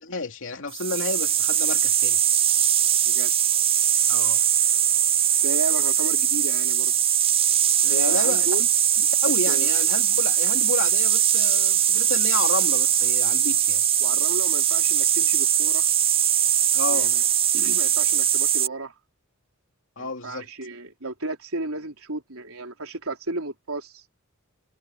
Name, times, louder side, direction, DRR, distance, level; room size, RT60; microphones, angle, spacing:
voice 1, 0.0-2.2 4.1-4.4 7.8-8.5 9.2-13.8 16.7-17.1 20.0-20.5, left 3 dB, 65° left, 2.9 m, -31 dB
sound 1, 0.7-18.7, right 10 dB, 25° right, 0.6 m, -21 dB
voice 2, 5.3-6.9 7.9-8.7 9.5-9.7 14.0-15.9 16.9-17.2 17.5-19.0 20.0-24.0, right 2 dB, 70° right, 4.6 m, -33 dB
head